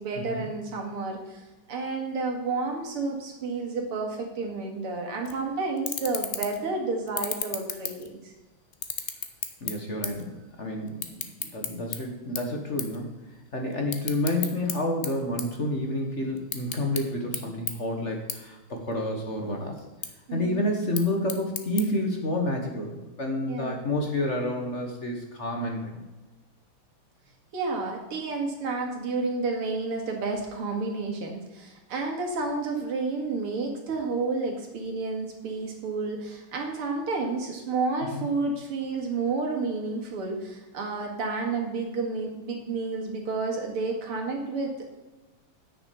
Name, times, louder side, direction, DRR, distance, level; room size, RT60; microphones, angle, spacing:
voice 1, 0.0-8.3 20.3-20.6 23.5-23.8 27.5-44.9, right 3 dB, 85° right, 1 dB, 2.8 m, -30 dB
sound 1, 5.2-5.4 5.8-6.7 7.1-8.3 8.7-10.3 10.5-12.0 12.4-12.5 12.8-13.0 13.3-14.7 15.0-16.0 16.4-17.0 17.3-17.4 17.7-17.8 18.3-18.4 18.8-19.3 19.8-20.1 20.7-21.8, left 6 dB, 55° left, 0.6 m, -33 dB
voice 2, 9.6-13.1 13.5-19.8 20.3-26.0 38.1-38.3, left 1 dB, 40° left, 2 dB, 1.3 m, -29 dB
9.8 x 6.5 x 6.9 m, 1.1 s
omnidirectional pair, 2.4 m